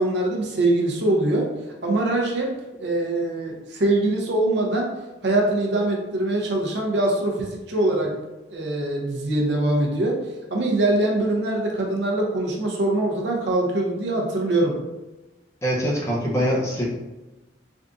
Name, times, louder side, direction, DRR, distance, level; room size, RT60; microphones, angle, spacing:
voice 1, 0.0-1.5 1.8-2.5 2.8-4.9 5.2-8.1 8.5-10.2 10.5-14.7, right 2 dB, 70° right, 0 dB, 0.6 m, -23 dB
voice 2, 15.6-16.8, equal, 15° left, -4 dB, 0.6 m, -23 dB
3.5 x 2.4 x 2.5 m, 1.1 s
head